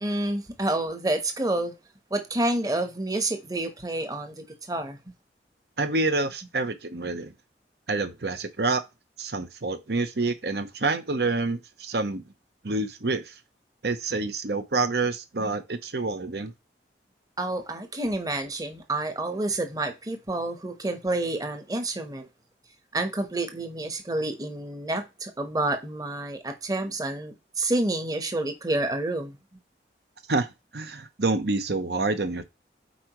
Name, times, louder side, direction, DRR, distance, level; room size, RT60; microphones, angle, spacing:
voice 1, 0.0-1.7 2.1-5.0 17.4-22.3 22.9-29.4, right 2 dB, 20° right, 1.1 m, -29 dB
voice 2, 5.8-7.3 7.9-8.8 9.2-12.2 12.6-13.4 13.8-16.5 30.3-32.4, right 3 dB, 65° right, 0.9 m, -27 dB
8.4 x 4.7 x 3.0 m
head